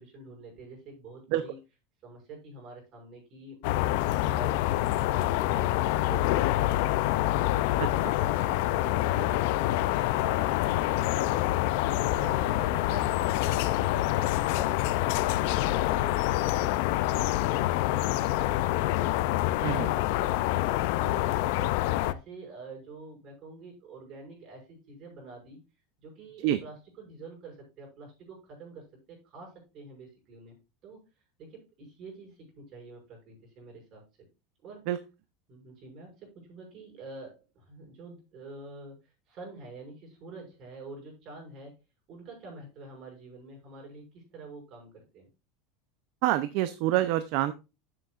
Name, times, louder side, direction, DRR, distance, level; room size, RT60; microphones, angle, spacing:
voice 1, 0.0-1.6 2.0-4.6 5.0-7.9 8.2-11.6 12.0-13.1 13.4-19.2 19.6-25.6 26.0-30.6 30.8-31.0 31.4-34.3 34.6-34.9 35.5-39.0 39.3-41.7 42.1-45.3, right 3 dB, 35° right, -1 dB, 6.2 m, -47 dB
sound 1, 3.6-22.1, left 15 dB, 60° left, 0.5 m, -26 dB
voice 2, 46.2-47.5, right 14 dB, 55° right, 12 dB, 0.6 m, -27 dB
12.0 x 7.9 x 2.5 m, 0.28 s
supercardioid pair, 160°, 0 cm